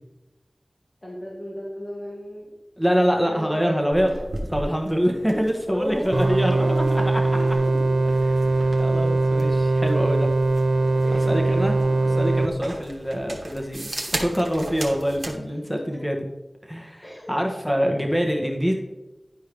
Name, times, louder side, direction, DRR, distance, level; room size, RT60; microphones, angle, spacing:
voice 1, 1.0-2.5 3.3-4.2 5.7-7.9 11.0-11.6 15.3-16.0 17.0-17.4, equal, 50° left, -7 dB, 1.9 m, -35 dB
voice 2, 2.8-4.1 4.5-7.3 8.4-10.3 11.3-11.8 12.0-16.2 16.6-18.7, equal, 5° left, 2 dB, 1.2 m, -25 dB
sound 1, 3.9-15.4, right 1 dB, 60° right, 1.2 m, -37 dB
sound 2, 6.1-12.5, right 2 dB, 85° right, 0.6 m, -21 dB
11.0 x 4.5 x 3.3 m, 1.0 s
wide cardioid pair, 45°, 0 cm